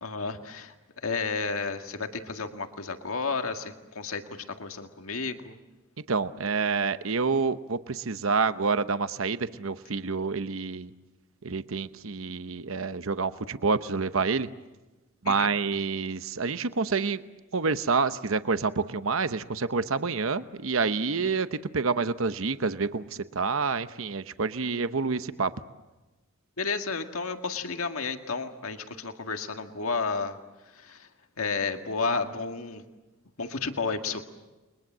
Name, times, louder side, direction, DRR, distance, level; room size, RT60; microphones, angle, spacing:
voice 1, 0.0-5.6 15.3-15.5 26.6-30.4 30.7-31.1 31.4-32.8 33.4-34.2, left 4 dB, 85° left, 6 dB, 1.9 m, -32 dB
voice 2, 6.1-10.9 11.4-14.5 15.2-17.2 17.5-25.5, right 4 dB, 70° right, 12 dB, 0.9 m, -28 dB
30.0 x 22.5 x 7.5 m, 1.1 s
head